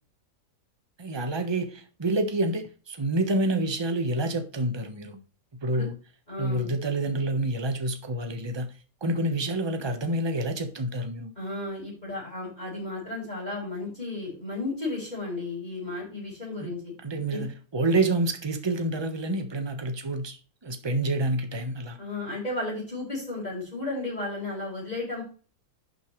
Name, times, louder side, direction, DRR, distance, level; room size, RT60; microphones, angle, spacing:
voice 1, 1.0-5.2 5.6-5.9 6.4-8.7 9.0-11.3 16.6-16.7 17.0-22.0, right 2 dB, 15° right, 1.1 m, -28 dB
voice 2, 6.3-6.7 11.3-16.9 17.3-17.5 22.0-25.2, left 2 dB, 25° left, 5.1 m, -34 dB
11.0 x 6.9 x 3.2 m
omnidirectional pair, 1.9 m